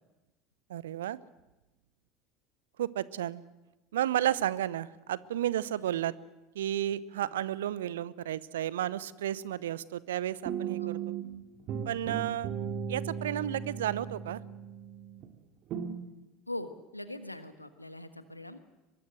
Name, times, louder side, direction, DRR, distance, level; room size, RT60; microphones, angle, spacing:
voice 1, 0.7-1.2 2.8-3.4 3.9-6.1 6.5-11.1 11.8-12.5 12.9-14.4, right 12 dB, 70° right, 20 dB, 0.7 m, -32 dB
sound 1, 10.4-11.3 11.7-15.3 15.7-15.9, right 8 dB, 45° right, 2.5 m, -36 dB
voice 2, 16.5-18.6, left 1 dB, 90° left, 11 dB, 1.4 m, -42 dB
24.0 x 22.0 x 7.8 m, 1.1 s
figure-of-eight pair, 70°, 0 cm